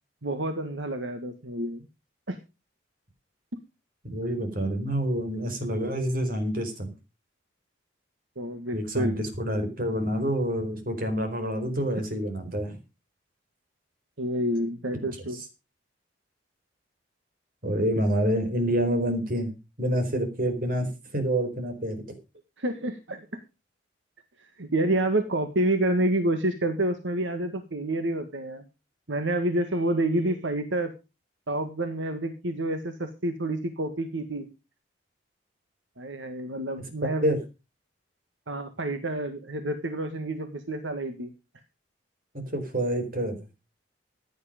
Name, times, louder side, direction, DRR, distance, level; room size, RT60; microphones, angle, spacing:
voice 1, 0.2-1.9 2.3-2.4 8.4-9.2 14.2-15.4 22.6-23.3 24.4-28.6 29.1-30.9 31.5-34.5 36.0-37.4 38.5-41.3, right 1 dB, 80° right, 7 dB, 1.7 m, -28 dB
voice 2, 4.0-6.9 8.7-12.8 15.3-15.4 17.6-19.5 19.8-20.9 21.1-22.0 37.2-37.4 42.3-43.4, equal, 50° right, 7 dB, 4.4 m, -27 dB
15.5 x 9.8 x 5.2 m, 0.30 s
head